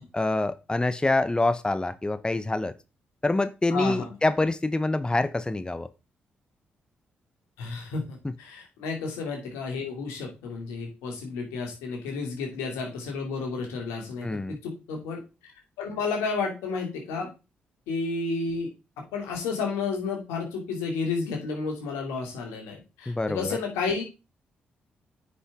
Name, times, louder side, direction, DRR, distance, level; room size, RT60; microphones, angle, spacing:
voice 1, 0.1-2.7 3.2-5.9 8.2-8.3 14.2-14.6 23.1-23.6, left 2 dB, 20° left, 13 dB, 0.7 m, -26 dB
voice 2, 3.7-4.0 7.6-15.5 15.8-17.3 17.9-18.7 19.1-24.0, left 4 dB, 85° left, 1 dB, 2.5 m, -31 dB
9.6 x 5.5 x 3.6 m, 0.29 s
hypercardioid pair, 45°, 5 cm